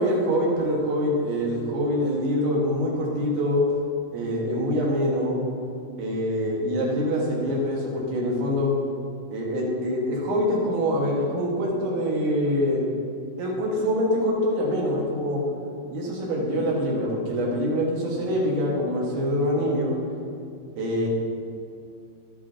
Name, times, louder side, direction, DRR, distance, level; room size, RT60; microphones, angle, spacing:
voice 1, 0.0-3.6 4.1-5.4 6.0-8.7 9.3-12.8 13.4-15.4 15.9-20.0 20.8-21.1, equal, 70° right, -3 dB, 3.9 m, -25 dB
11.5 x 11.0 x 2.9 m, 2.4 s
omnidirectional pair, 5.5 m